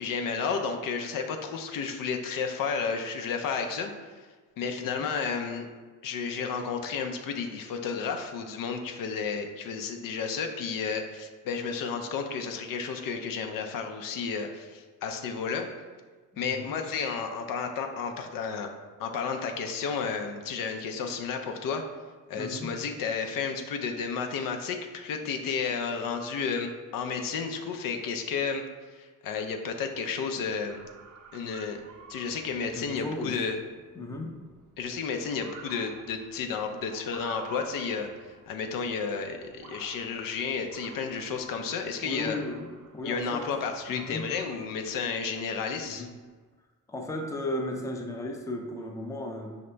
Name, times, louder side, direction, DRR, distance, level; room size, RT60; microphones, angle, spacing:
voice 1, 0.0-4.1 4.6-5.7 6.0-15.7 16.4-18.7 19.0-21.8 22.3-28.6 28.9-30.8 31.3-31.8 32.1-33.6 34.8-38.1 38.5-42.4 43.0-46.1, left 5 dB, 85° left, 5 dB, 0.6 m, -32 dB
voice 2, 16.3-16.8 22.3-22.7 32.7-33.4 33.9-34.3 42.0-42.7 42.9-43.5 43.9-44.2 45.8-46.1 46.9-49.6, left 1 dB, 10° left, 2 dB, 0.4 m, -35 dB
Motor vehicle (road) / Siren, 30.7-46.2, right 5 dB, 70° right, 0.6 m, -51 dB
5.1 x 2.8 x 3.3 m, 1.4 s
cardioid pair, 120°, 33 cm